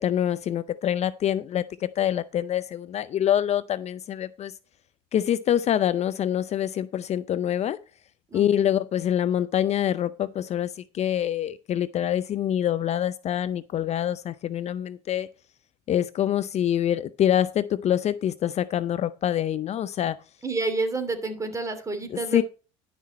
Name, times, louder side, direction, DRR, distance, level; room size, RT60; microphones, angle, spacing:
voice 1, 0.0-4.5 5.1-7.8 8.3-15.3 15.9-20.2 22.1-22.4, left 10 dB, 45° left, 0.5 m, -25 dB
voice 2, 8.3-8.7 20.4-22.4, right 3 dB, 20° right, 2.7 m, -29 dB
11.0 x 6.0 x 4.2 m
supercardioid pair, 80°, 16 cm